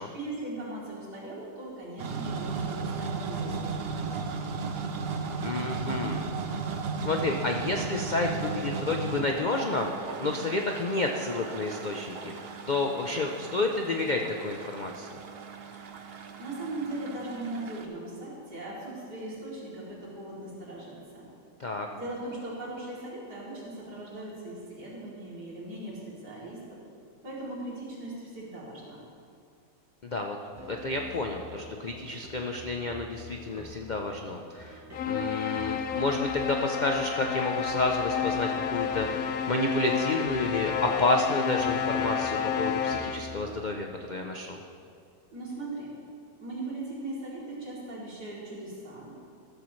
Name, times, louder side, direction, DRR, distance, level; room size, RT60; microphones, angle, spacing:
voice 1, 0.1-4.3 16.4-21.3 21.9-26.8 27.2-29.0 45.3-45.9 46.4-49.2, right 2 dB, 70° right, -6 dB, 3.7 m, -39 dB
sound 1, 2.0-17.8, right 5 dB, 50° right, 0.7 m, -36 dB
voice 2, 5.4-6.3 7.0-9.9 10.2-12.3 12.7-15.1 21.6-21.9 30.0-30.4 30.7-44.6, left 2 dB, 85° left, 2 dB, 0.4 m, -30 dB
sound 2, 30.5-43.7, left 1 dB, 15° right, 0.6 m, -48 dB
sound 3, 34.9-43.5, left 7 dB, 65° left, 1.0 m, -31 dB
14.0 x 13.5 x 3.2 m, 2.4 s
omnidirectional pair, 1.8 m